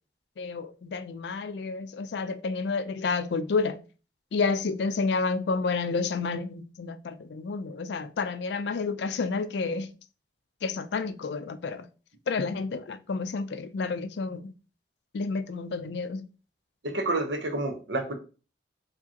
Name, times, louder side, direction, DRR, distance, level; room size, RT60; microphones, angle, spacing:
voice 1, 0.4-3.8 4.3-9.9 10.6-11.9 12.3-14.5 15.1-16.3, left 4 dB, 70° left, 0.4 m, -30 dB
voice 2, 16.8-18.1, right 2 dB, 75° right, 0.9 m, -29 dB
4.9 x 3.0 x 2.8 m
head